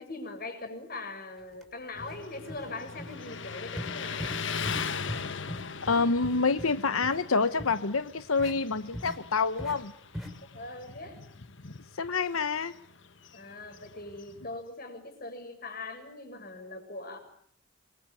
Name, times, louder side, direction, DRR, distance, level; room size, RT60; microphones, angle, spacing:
voice 1, 0.0-4.4 10.5-11.2 13.3-17.2, left 2 dB, 45° left, 6 dB, 7.3 m, -41 dB
sound 1, 1.5-1.6 2.0-2.2 2.5-2.7 3.0-3.1 3.8-3.9 4.2-4.4 4.6-4.8 5.1-5.2 5.5-6.7 7.0-7.2 7.6-7.7 8.4-8.5 8.9-9.2 9.6-9.7 10.1-10.3, equal, ahead, 6.6 m, -39 dB
Motorcycle, 2.0-14.6, left 6 dB, 60° left, 1.5 m, -40 dB
voice 2, 5.9-9.9 11.9-12.7, left 4 dB, 90° left, 12 dB, 1.1 m, -27 dB
27.0 x 23.0 x 8.9 m, 0.63 s
head